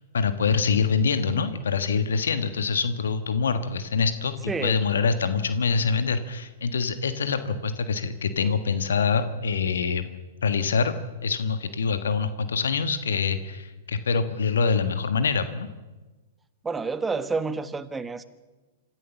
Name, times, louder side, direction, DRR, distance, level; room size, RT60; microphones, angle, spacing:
voice 1, 0.1-10.1 10.4-10.9 11.2-15.7, left 5 dB, 75° left, 11 dB, 1.5 m, -25 dB
voice 2, 4.5-4.8 16.6-18.2, right 4 dB, 10° right, 13 dB, 1.2 m, -29 dB
26.5 x 14.0 x 7.1 m, 1.2 s
hypercardioid pair, 110°, 0 cm